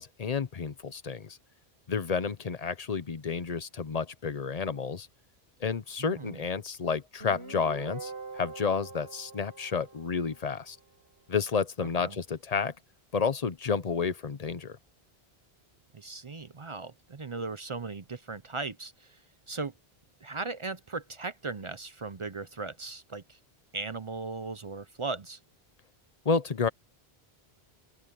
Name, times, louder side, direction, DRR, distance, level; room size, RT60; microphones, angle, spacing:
voice 1, 0.0-1.4 1.9-5.1 5.6-10.8 11.3-12.7 13.1-14.8 26.2-26.7, left 5 dB, 40° left, 0.9 m, -30 dB
voice 2, 6.0-6.4 11.8-12.2 15.9-19.2 19.5-19.7 20.2-23.4 23.7-25.4, right 3 dB, 35° right, 0.6 m, -38 dB
Guitar, 7.2-10.7, right 4 dB, 85° right, 5.4 m, -44 dB
open air
omnidirectional pair, 1.1 m